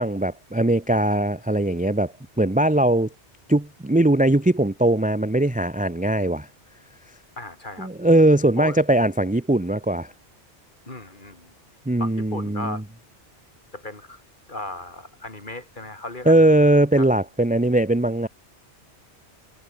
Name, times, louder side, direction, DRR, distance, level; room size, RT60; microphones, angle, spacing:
voice 1, 0.0-3.1 3.5-6.5 7.8-10.1 11.9-12.8 16.3-18.3, right 1 dB, 10° right, 0.7 m, -20 dB
voice 2, 7.4-7.9 8.6-8.8 10.9-11.5 12.0-12.8 13.7-14.2 14.5-16.7 17.0-17.1, left 2 dB, 45° left, 3.7 m, -36 dB
omnidirectional pair, 1.2 m